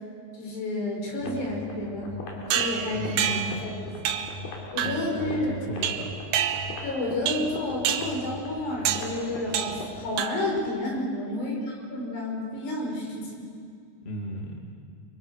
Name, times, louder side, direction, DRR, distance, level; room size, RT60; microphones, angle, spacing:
voice 1, 0.3-4.2 4.7-5.5 6.8-13.5, left 1 dB, 90° left, -1 dB, 7.2 m, -31 dB
sound 1, 1.2-10.2, left 1 dB, 65° left, 4.9 m, -40 dB
sound 2, 2.5-3.6 4.1-4.4 4.8-5.1 5.8-6.9 7.3-7.6 7.9-8.2 8.9-9.2 9.5-9.9 10.2-10.6, right 9 dB, 75° right, 2.9 m, -28 dB
voice 2, 2.9-3.5 4.8-6.1 14.0-14.6, equal, 25° left, 0 dB, 1.3 m, -35 dB
29.5 x 23.5 x 6.5 m, 2.3 s
omnidirectional pair, 4.7 m